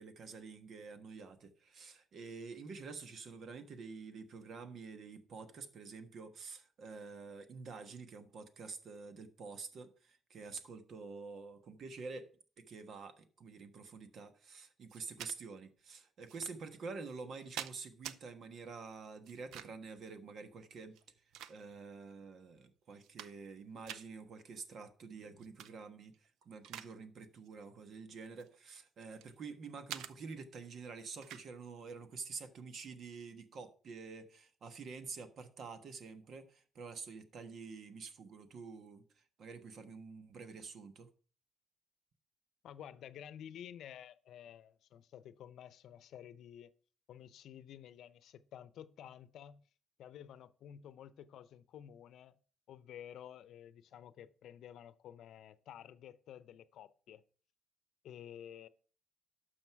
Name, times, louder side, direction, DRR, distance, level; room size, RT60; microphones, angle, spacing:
voice 1, 0.0-12.3 12.6-21.0 21.5-41.1, right 4 dB, 60° right, 1.4 m, -48 dB
sound 1, 14.9-15.3 16.3-16.4 17.1-18.2 19.3-19.9 20.9-21.9 22.5-22.6 22.9-23.6 23.9-24.1 25.4-25.7 26.1-26.9 27.2-27.5 28.2-29.3 29.9-30.1 31.2-31.5, right 10 dB, 90° right, 0.6 m, -47 dB
voice 2, 42.6-46.7 47.1-49.7 50.0-52.4 52.7-57.2 58.0-58.7, left 10 dB, 75° left, 0.7 m, -52 dB
12.0 x 6.4 x 4.7 m
cardioid pair, 90°, 0 cm